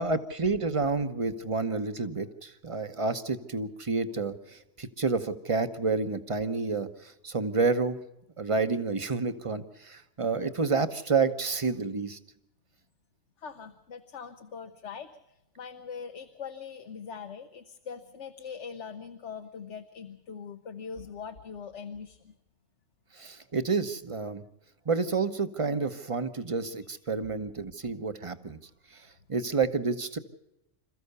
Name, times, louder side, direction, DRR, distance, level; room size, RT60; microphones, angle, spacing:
voice 1, 0.0-8.0 8.4-12.2 23.1-24.4 24.8-28.6 28.9-30.2, right 4 dB, 30° right, 10 dB, 1.1 m, -29 dB
voice 2, 13.4-22.3, left 6 dB, 75° left, 7 dB, 1.3 m, -42 dB
27.5 x 14.5 x 6.8 m, 0.90 s
omnidirectional pair, 1.2 m